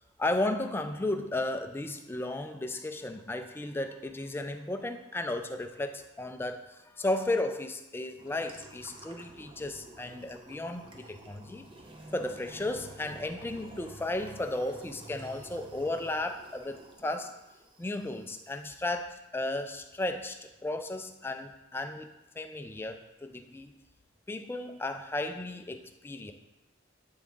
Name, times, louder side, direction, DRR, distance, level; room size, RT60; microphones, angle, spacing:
voice 1, 0.2-11.7 12.1-17.4 17.8-23.8 24.3-26.3, left 2 dB, 10° left, 7 dB, 0.3 m, -34 dB
sound 1, 8.2-18.6, right 2 dB, 25° right, 0.7 m, -51 dB
8.6 x 3.5 x 3.7 m, 0.97 s
head